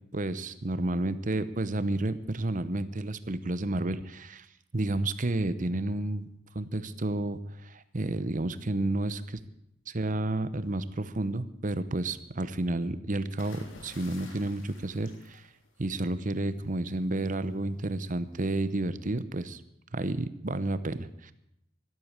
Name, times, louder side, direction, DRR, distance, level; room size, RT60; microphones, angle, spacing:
voice 1, 0.1-4.5 4.7-6.2 6.5-9.4 9.9-15.4 15.8-19.6 19.9-21.3, right 2 dB, 45° right, 13 dB, 0.9 m, -31 dB
sound 1, 13.4-16.1 17.4-17.7, left 3 dB, 90° left, 3.3 m, -51 dB
12.5 x 12.5 x 8.1 m, 0.80 s
head